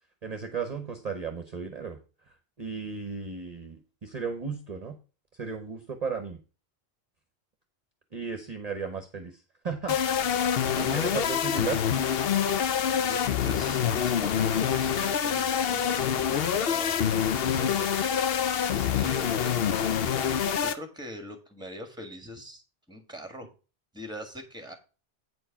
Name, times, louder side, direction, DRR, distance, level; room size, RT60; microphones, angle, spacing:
voice 1, 0.2-2.0 2.6-5.0 5.4-6.4 8.1-9.3 9.6-10.0 10.8-11.8, right 5 dB, 40° right, 5 dB, 0.9 m, -34 dB
sound 1, 9.9-20.7, left 8 dB, 65° left, 0.9 m, -26 dB
voice 2, 10.7-11.2 12.7-17.0 17.4-17.9 18.7-22.6 22.9-23.5 23.9-24.7, equal, 5° right, 6 dB, 1.5 m, -42 dB
8.7 x 4.5 x 5.7 m, 0.34 s
omnidirectional pair, 1.1 m